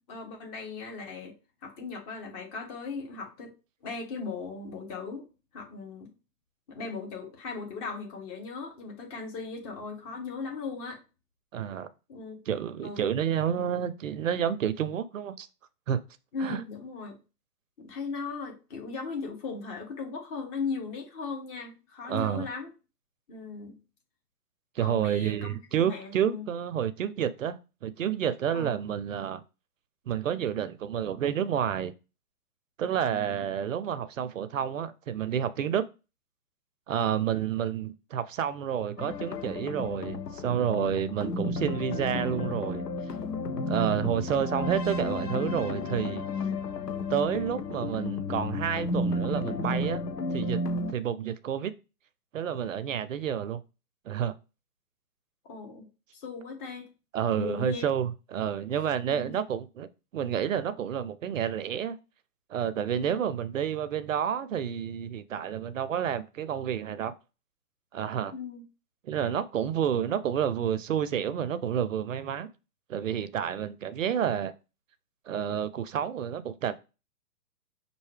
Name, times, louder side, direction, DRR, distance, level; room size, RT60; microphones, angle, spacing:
voice 1, 0.1-1.3 1.6-3.5 3.8-5.2 5.5-6.1 6.7-11.0 12.1-12.4 12.8-13.2 16.3-17.2 17.8-22.7 23.3-23.8 24.8-25.5 25.8-26.5 28.5-28.7 33.0-33.4 37.0-37.2 55.4-56.9 57.3-57.9 59.0-59.4 62.8-63.2 68.3-68.6, left 4 dB, 25° left, 1.1 m, -38 dB
voice 2, 11.5-11.9 12.5-15.5 15.9-16.0 16.4-16.6 22.1-22.5 24.8-29.4 30.1-31.9 32.8-35.8 36.9-42.9 43.7-46.2 47.1-50.0 50.3-50.6 50.9-51.7 52.3-53.6 54.1-54.3 57.1-59.9 60.1-62.0 62.5-67.1 67.9-68.3 69.0-72.5 72.9-74.5 75.3-76.8, right 9 dB, 55° right, 0.5 m, -29 dB
sound 1, 39.0-50.9, left 2 dB, 85° left, 0.7 m, -32 dB
5.4 x 2.6 x 3.2 m
hypercardioid pair, 135°, 47 cm